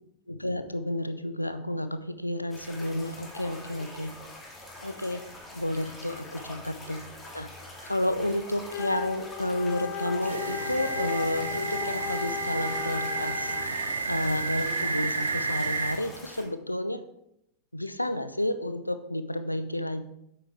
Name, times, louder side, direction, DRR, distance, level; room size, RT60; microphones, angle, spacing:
voice 1, 0.3-4.1 4.8-5.2 5.5-7.0 7.3-7.5 7.8-13.5 14.1-17.0 17.7-20.0, left 1 dB, 85° left, 11 dB, 0.5 m, -31 dB
sound 1, 2.5-16.4, left 1 dB, 15° left, 2.4 m, -45 dB
Wind instrument woodwind instrument, 8.6-13.9, left 9 dB, 35° left, 0.8 m, -36 dB
sound 2, 10.2-15.9, right 4 dB, 80° right, 0.6 m, -31 dB
8.8 x 7.9 x 3.3 m, 0.80 s
figure-of-eight pair, 90°, 0 cm